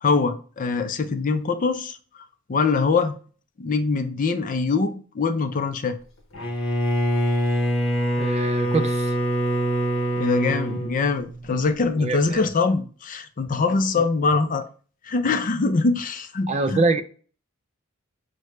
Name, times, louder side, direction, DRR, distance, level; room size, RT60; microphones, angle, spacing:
voice 1, 0.0-2.0 2.5-3.1 3.6-6.0 10.2-14.7 15.1-16.8, left 4 dB, 40° left, 0.5 m, -23 dB
Bowed string instrument, 6.3-11.7, equal, 65° left, 0.9 m, -24 dB
voice 2, 8.2-9.1 12.0-12.5 14.4-14.5 16.5-17.0, right 3 dB, 30° right, 0.4 m, -24 dB
6.2 x 2.2 x 3.1 m
head